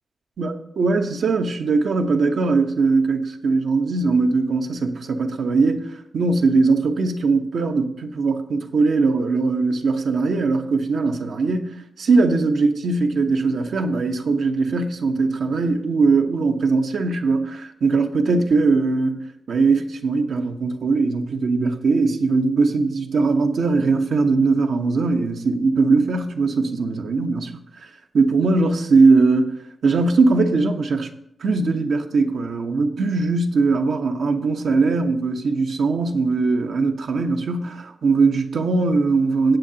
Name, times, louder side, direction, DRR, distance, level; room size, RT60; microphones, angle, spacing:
voice 1, 0.4-31.1 31.4-39.6, right 3 dB, 75° right, 1.0 m, -20 dB
17.0 x 7.8 x 2.8 m
wide cardioid pair, 160°, 0 cm